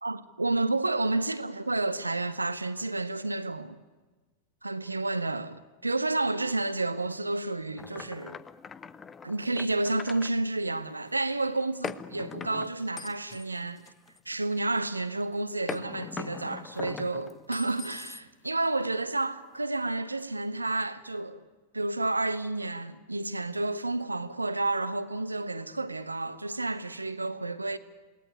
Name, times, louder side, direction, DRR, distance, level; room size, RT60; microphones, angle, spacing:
voice 1, 0.0-3.8 4.6-8.4 9.2-13.9 14.3-21.4 21.7-27.8, right 2 dB, 80° right, 1.2 m, -30 dB
sound 1, 7.8-10.3 11.8-14.5 15.7-18.5, left 6 dB, 20° left, 0.9 m, -41 dB
28.0 x 19.0 x 9.8 m
figure-of-eight pair, 90°, 0 cm